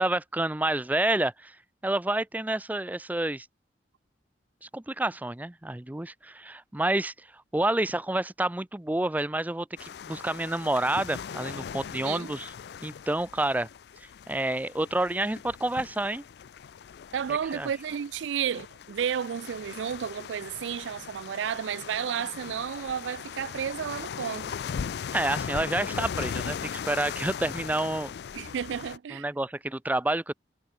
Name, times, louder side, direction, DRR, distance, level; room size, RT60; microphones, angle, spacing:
voice 1, 0.0-1.6 1.8-3.5 4.7-7.1 7.5-12.5 12.8-13.7 14.3-16.2 17.5-17.7 25.1-28.1 29.1-30.3, right 1 dB, 10° right, 0.5 m, -29 dB
sound 1, 9.8-29.0, left 7 dB, 65° left, 0.3 m, -39 dB
voice 2, 11.9-12.3 17.1-24.5 28.3-29.3, right 8 dB, 90° right, 0.4 m, -32 dB
head